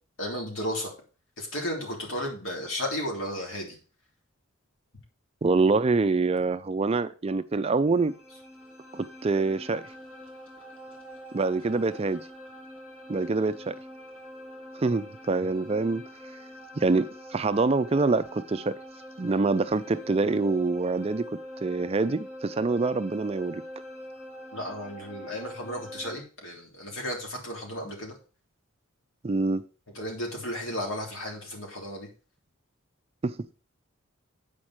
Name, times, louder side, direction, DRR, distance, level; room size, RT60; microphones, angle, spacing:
voice 1, 0.2-0.9 1.4-3.8 24.5-28.2 29.9-32.1, equal, 70° left, 3.3 m, -34 dB
voice 2, 5.4-8.1 8.9-9.9 11.3-12.2 13.1-13.8 14.7-16.0 16.8-18.7 19.2-21.3 21.6-23.6 29.2-29.6 33.2-33.4, right 3 dB, 30° right, 0.4 m, -25 dB
sound 1, 7.8-26.2, equal, 10° left, 2.7 m, -44 dB
8.7 x 5.2 x 6.2 m
head